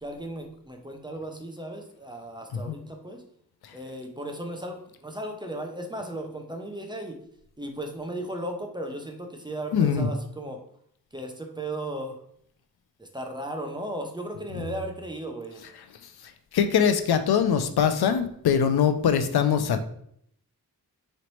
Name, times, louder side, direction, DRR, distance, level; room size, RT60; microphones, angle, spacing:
voice 1, 0.0-3.2 3.7-7.2 7.6-10.6 11.1-12.2 13.0-15.6, right 1 dB, 10° right, 3 dB, 0.6 m, -36 dB
voice 2, 9.7-10.1 14.5-14.6 16.5-19.8, left 7 dB, 75° left, 9 dB, 0.5 m, -22 dB
3.9 x 3.2 x 3.0 m, 0.68 s
wide cardioid pair, 85°, 38 cm